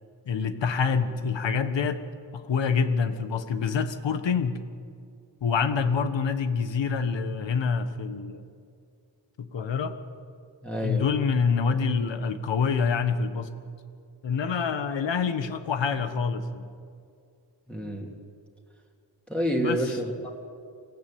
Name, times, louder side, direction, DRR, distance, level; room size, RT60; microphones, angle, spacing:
voice 1, 0.3-2.0 2.3-4.6 5.4-8.4 9.4-10.0 10.7-13.5 14.2-16.6 19.6-20.0, left 5 dB, 80° left, 10 dB, 1.5 m, -26 dB
voice 2, 10.6-11.0 17.7-18.1 19.3-20.3, equal, 5° left, -2 dB, 2.7 m, -28 dB
25.0 x 15.5 x 8.8 m, 2.3 s
wide cardioid pair, 140°, 43 cm